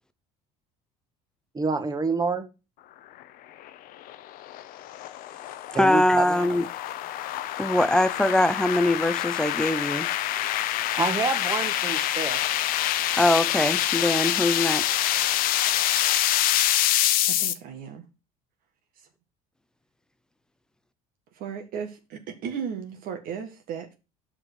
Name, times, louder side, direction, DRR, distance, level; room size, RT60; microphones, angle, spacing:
voice 1, 1.5-2.5 5.7-6.3 11.0-12.4, right 4 dB, 25° right, 1.4 m, -27 dB
sound 1, 3.6-17.5, left 13 dB, 65° left, 0.8 m, -26 dB
voice 2, 5.7-6.7 7.6-10.1 13.2-15.0, left 1 dB, 5° left, 0.7 m, -22 dB
voice 3, 17.2-18.1 19.0-19.1 21.3-23.9, right 7 dB, 65° right, 1.6 m, -35 dB
6.1 x 5.1 x 6.2 m
supercardioid pair, 105°, 16 cm